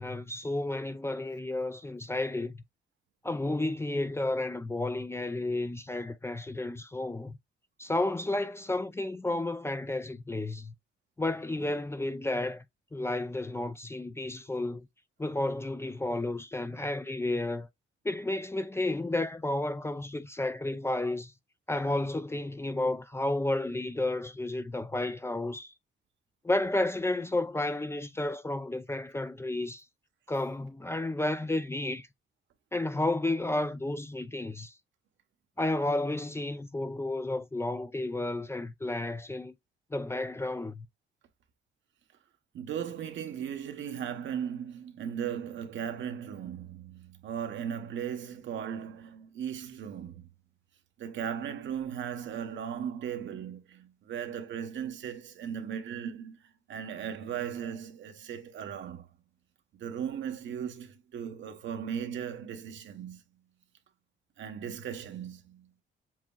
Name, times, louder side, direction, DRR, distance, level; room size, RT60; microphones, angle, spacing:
voice 1, 0.0-2.6 3.2-7.4 7.8-10.7 11.2-12.6 12.9-14.9 15.2-17.7 18.0-21.3 21.7-25.7 26.4-29.8 30.3-32.1 32.7-34.7 35.6-39.5 39.9-40.9, left 2 dB, 15° left, 0.4 m, -32 dB
voice 2, 42.5-50.3 51.0-59.1 59.7-63.2 64.4-65.7, right 8 dB, 70° right, 1.0 m, -37 dB
7.4 x 2.8 x 2.3 m
cardioid pair, 90°, 20 cm